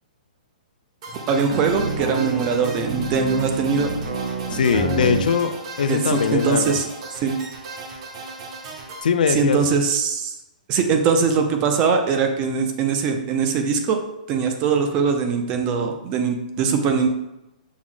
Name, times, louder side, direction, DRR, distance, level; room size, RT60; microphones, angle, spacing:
sound 1, 1.0-9.0, right 3 dB, 40° right, 0.7 m, -37 dB
voice 1, 1.3-3.9 5.9-6.9 7.2-7.4 9.3-10.4 10.7-14.0 14.3-17.1, right 5 dB, 20° right, 5 dB, 0.3 m, -21 dB
sound 2, 1.5-5.3, right 3 dB, 85° right, 0.7 m, -28 dB
voice 2, 4.5-6.8 9.0-9.6, left 6 dB, 75° left, 9 dB, 0.4 m, -21 dB
6.1 x 2.0 x 3.7 m, 0.92 s
hypercardioid pair, 170°, 5 cm